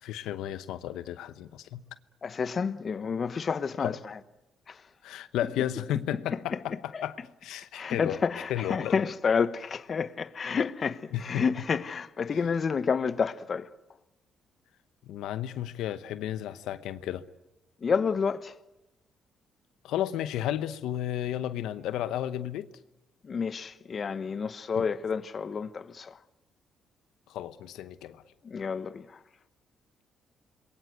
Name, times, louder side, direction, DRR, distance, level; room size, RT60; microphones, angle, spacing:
voice 1, 0.0-1.8 3.8-4.0 5.0-8.2 8.5-9.0 11.1-11.5 15.0-17.2 19.8-22.7 24.8-24.9 27.3-28.2, left 11 dB, 90° left, 0.9 m, -33 dB
voice 2, 2.2-3.9 4.7-4.8 6.5-6.6 6.9-7.0 7.7-13.7 17.8-18.5 23.2-26.2 28.4-29.2, left 5 dB, 45° left, 1.1 m, -29 dB
27.0 x 22.0 x 8.1 m
cardioid pair, 90°, 0 cm